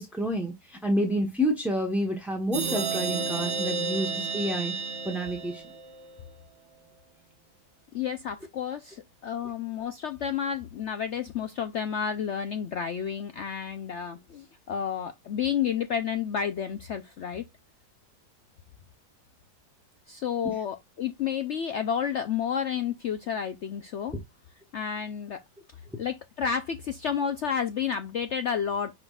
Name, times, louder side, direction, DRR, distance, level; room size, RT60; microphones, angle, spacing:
voice 1, 0.0-4.7 5.0-5.6, equal, ahead, 0.7 m, -29 dB
sound 1, 2.5-6.1, right 4 dB, 45° right, 1.5 m, -31 dB
voice 2, 7.9-17.4 20.1-24.1 24.7-25.4 26.0-28.9, left 8 dB, 70° left, 0.7 m, -31 dB
10.5 x 3.8 x 2.3 m
omnidirectional pair, 1.8 m